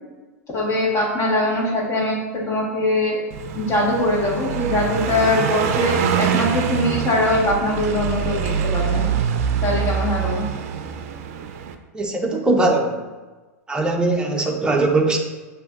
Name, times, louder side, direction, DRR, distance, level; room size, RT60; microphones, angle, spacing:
voice 1, 0.5-3.2 3.5-9.1 9.6-10.5, left 1 dB, 35° left, -3 dB, 1.5 m, -22 dB
Car passing by, 3.3-11.7, right 7 dB, 60° right, 0.4 m, -24 dB
voice 2, 11.9-13.1 13.7-15.2, right 2 dB, 10° right, 1 dB, 0.7 m, -20 dB
6.5 x 2.6 x 2.5 m, 1.3 s
hypercardioid pair, 105°, 9 cm